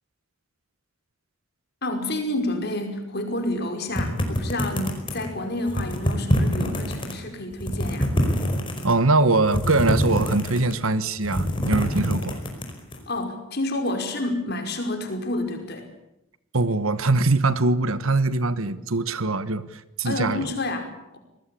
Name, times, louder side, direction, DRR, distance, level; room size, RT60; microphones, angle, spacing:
voice 1, 1.8-8.1 13.1-15.9 20.0-21.2, left 1 dB, 50° left, 5 dB, 5.3 m, -29 dB
sound 1, 3.9-5.3 5.7-7.1 7.5-8.9 9.4-10.8 11.1-13.0, equal, 25° left, 5.1 m, -25 dB
voice 2, 8.8-12.4 16.5-20.5, right 3 dB, 80° right, 14 dB, 1.4 m, -22 dB
26.5 x 19.5 x 8.6 m, 0.88 s
head